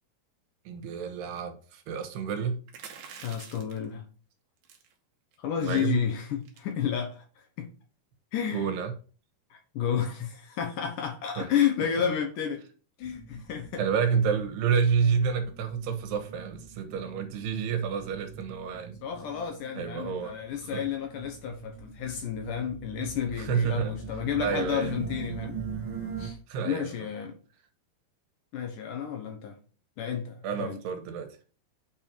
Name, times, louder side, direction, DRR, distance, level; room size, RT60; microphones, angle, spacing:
voice 1, 0.7-2.6 5.6-6.0 8.5-8.9 11.4-11.5 12.0-12.1 13.8-19.0 19.8-20.8 23.4-23.9 24.4-24.9 26.5-26.9 30.4-31.3, right 6 dB, 85° right, 8 dB, 3.3 m, -29 dB
sound 1, 2.7-3.9 4.6-4.9 5.3-5.4 5.6-5.9 6.4-6.7, right 7 dB, 65° right, 2.8 m, -46 dB
voice 2, 3.2-4.0 5.4-7.7 8.3-8.6 9.5-12.6 13.0-13.8 19.0-25.6 26.2-26.4 26.6-27.4 28.5-29.6 30.0-30.8, left 8 dB, 70° left, 5 dB, 2.1 m, -31 dB
sound 2, 13.0-26.3, right 5 dB, 45° right, 2.2 m, -42 dB
8.5 x 4.6 x 5.1 m, 0.38 s
omnidirectional pair, 4.7 m